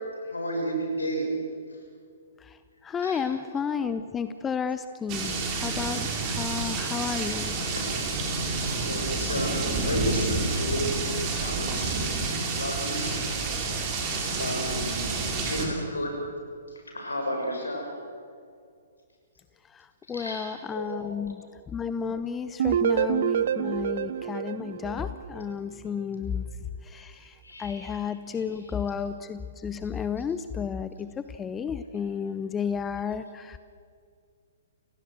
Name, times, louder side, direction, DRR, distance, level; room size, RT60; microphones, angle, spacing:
voice 1, 0.2-1.2 2.9-3.6 7.6-8.0 8.9-11.0 11.4-13.2 14.4-16.1 16.9-17.9 20.1-21.0 22.7-22.8 27.4-28.0 28.3-28.7, equal, 75° left, 2 dB, 6.7 m, -33 dB
voice 2, 2.8-7.5 19.7-21.4 21.7-26.4 26.8-33.6, left 6 dB, 15° left, 11 dB, 0.7 m, -32 dB
sound 1, 5.1-15.7, right 3 dB, 25° right, 3.9 m, -29 dB
sound 2, 22.6-25.5, right 9 dB, 50° right, 0.6 m, -27 dB
30.0 x 17.0 x 6.3 m, 2.2 s
figure-of-eight pair, 120°, 0 cm